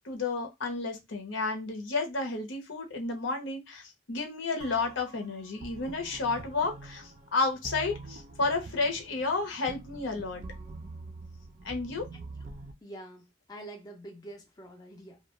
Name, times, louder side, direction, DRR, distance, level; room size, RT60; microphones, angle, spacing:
voice 1, 0.0-10.4 11.6-12.1, left 3 dB, 75° left, 0.8 m, -31 dB
sound 1, 4.6-12.7, right 3 dB, 40° right, 0.5 m, -45 dB
voice 2, 12.8-15.2, right 1 dB, 20° left, 0.5 m, -46 dB
2.4 x 2.2 x 3.0 m
head